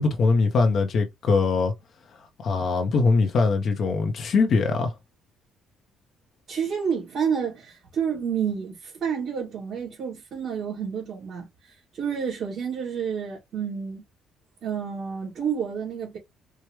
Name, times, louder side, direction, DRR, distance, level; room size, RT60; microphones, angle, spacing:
voice 1, 0.0-1.7 2.4-4.9, left 4 dB, 50° left, 0.8 m, -22 dB
voice 2, 6.5-14.0 14.6-16.2, right 7 dB, 60° right, 2.4 m, -29 dB
4.7 x 2.2 x 3.0 m
cardioid pair, 120°, 0 cm